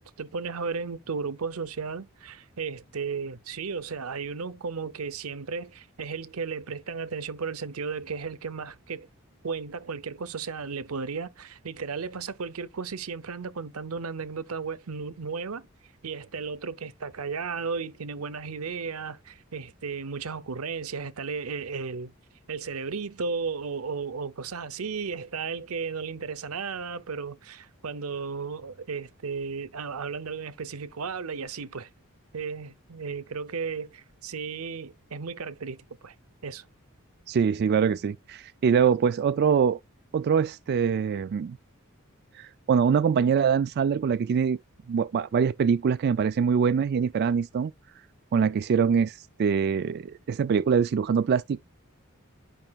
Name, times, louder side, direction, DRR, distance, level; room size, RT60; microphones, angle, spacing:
voice 1, 0.0-9.1 9.4-15.7 16.0-22.1 22.5-31.9 32.3-35.8 36.0-36.1 36.4-36.7, right 5 dB, 85° right, 0.8 m, -34 dB
voice 2, 37.3-39.8 40.1-41.6 42.3-44.6 44.9-47.7 48.3-51.6, right 6 dB, 50° right, 0.3 m, -24 dB
11.0 x 5.5 x 2.4 m
head